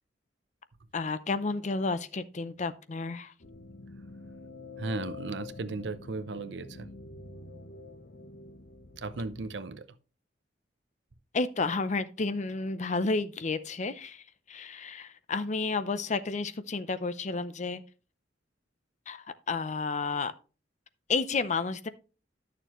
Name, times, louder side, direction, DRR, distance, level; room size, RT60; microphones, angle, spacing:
voice 1, 0.9-3.3 11.3-17.8 19.1-20.3 21.1-21.9, left 3 dB, 40° left, 0.6 m, -31 dB
sound 1, 3.4-9.5, left 4 dB, 60° left, 0.9 m, -46 dB
voice 2, 4.8-6.9 9.0-9.9, right 3 dB, 70° right, 0.7 m, -36 dB
11.0 x 6.7 x 3.0 m
head